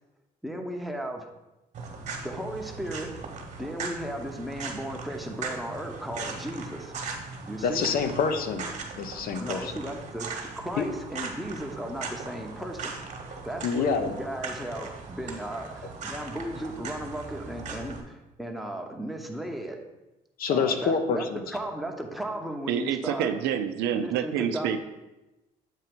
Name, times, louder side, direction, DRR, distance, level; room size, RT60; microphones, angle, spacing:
voice 1, 0.4-1.3 2.2-3.2 3.6-6.9 7.5-7.9 9.4-12.9 13.4-19.8 20.5-23.3 23.9-24.8, right 1 dB, ahead, 2 dB, 0.9 m, -35 dB
sound 1, 1.7-18.0, right 4 dB, 45° right, 1.2 m, -39 dB
voice 2, 7.6-8.7 9.0-9.7 10.8-10.9 13.6-14.1 20.4-21.4, left 5 dB, 60° left, 7 dB, 0.7 m, -26 dB
voice 3, 22.7-24.8, right 9 dB, 90° right, 8 dB, 0.5 m, -27 dB
8.0 x 2.8 x 6.0 m, 1.0 s
cardioid pair, 110°, 17 cm